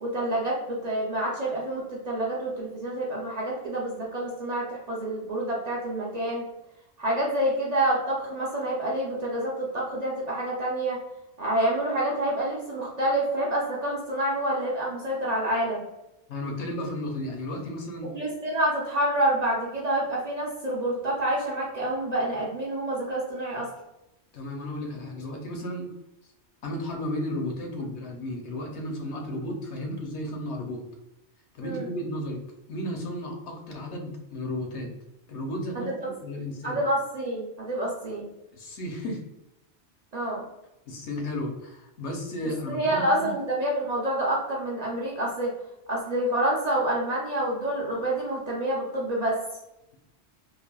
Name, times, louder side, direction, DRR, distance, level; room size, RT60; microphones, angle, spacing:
voice 1, 0.0-6.5 7.0-11.0 11.4-15.8 18.1-23.7 31.6-31.9 35.7-35.9 36.6-38.3 40.1-40.4 42.7-45.5 45.9-49.4, right 1 dB, 45° right, -4 dB, 0.6 m, -28 dB
voice 2, 16.3-18.1 24.3-25.9 26.6-30.9 31.5-34.9 35.3-36.8 38.5-39.3 40.9-43.3, left 1 dB, 80° left, 2 dB, 0.9 m, -34 dB
3.2 x 2.0 x 2.2 m, 0.88 s
omnidirectional pair, 1.2 m